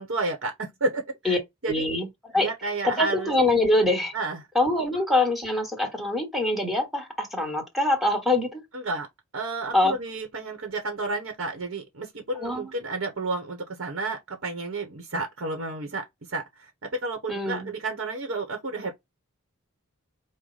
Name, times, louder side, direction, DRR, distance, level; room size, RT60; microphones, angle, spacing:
voice 1, 0.0-1.9 2.3-3.3 4.1-4.4 8.7-9.1 9.3-18.9, right 3 dB, 65° right, 1.0 m, -31 dB
voice 2, 1.7-2.5 2.8-4.1 4.5-8.6 9.7-10.0 12.4-12.7 17.3-17.7, left 2 dB, ahead, 1.3 m, -24 dB
4.8 x 2.1 x 3.9 m
head